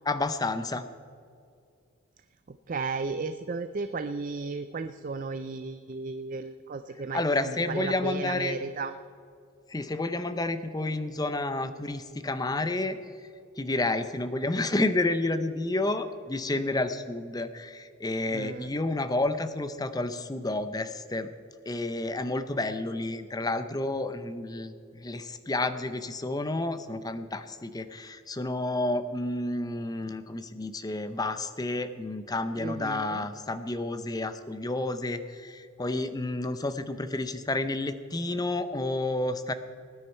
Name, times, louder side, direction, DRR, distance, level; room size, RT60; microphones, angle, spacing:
voice 1, 0.1-0.8 7.1-8.6 9.7-13.0 13.6-21.3 21.7-39.5, left 2 dB, 20° left, 10 dB, 0.6 m, -30 dB
voice 2, 2.5-8.9 18.3-18.7 32.6-33.3, right 4 dB, 40° right, 10 dB, 0.4 m, -34 dB
19.5 x 9.8 x 4.4 m, 2.3 s
head